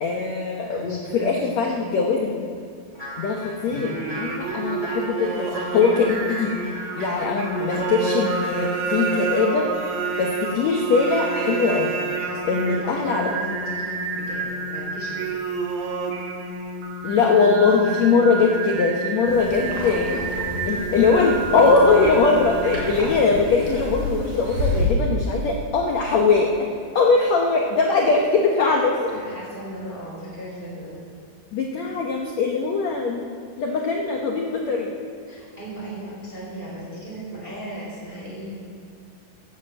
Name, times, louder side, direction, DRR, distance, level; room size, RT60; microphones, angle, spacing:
voice 1, 0.0-2.5 3.2-6.5 7.0-9.7 10.2-12.0 12.5-13.3 17.0-20.2 20.7-26.7 26.9-29.1 31.5-33.3 33.6-35.0, left 4 dB, 90° left, 0 dB, 1.5 m, -21 dB
voice 2, 0.7-1.4 4.2-4.5 12.2-15.2 19.6-19.7 20.0-20.7 28.6-28.7 29.1-30.9 35.3-38.6, right 1 dB, 15° right, -6 dB, 4.1 m, -37 dB
sound 1, 2.9-8.8, equal, 10° left, 1.6 m, -37 dB
Singing, 3.7-23.3, right 4 dB, 60° right, 2.0 m, -29 dB
sound 2, 19.2-24.9, left 2 dB, 35° right, 4.4 m, -30 dB
16.5 x 10.0 x 7.7 m, 2.3 s
omnidirectional pair, 4.8 m